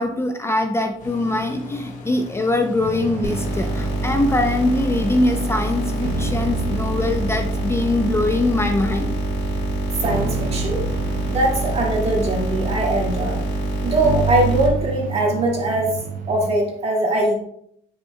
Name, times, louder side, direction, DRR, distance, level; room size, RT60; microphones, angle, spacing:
voice 1, 0.0-9.2, left 2 dB, 15° left, 5 dB, 0.5 m, -22 dB
sound 1, 1.0-6.4, left 3 dB, 45° left, 1.2 m, -37 dB
sound 2, 2.8-16.5, right 4 dB, 55° right, 0.7 m, -31 dB
sound 3, 3.2-14.7, right 2 dB, 80° left, 2.2 m, -25 dB
voice 2, 10.0-10.8 11.2-13.4 13.8-16.0 16.3-17.3, right 1 dB, 35° right, -2 dB, 2.0 m, -21 dB
8.9 x 5.5 x 2.2 m, 0.72 s
cardioid pair, 110°, 17 cm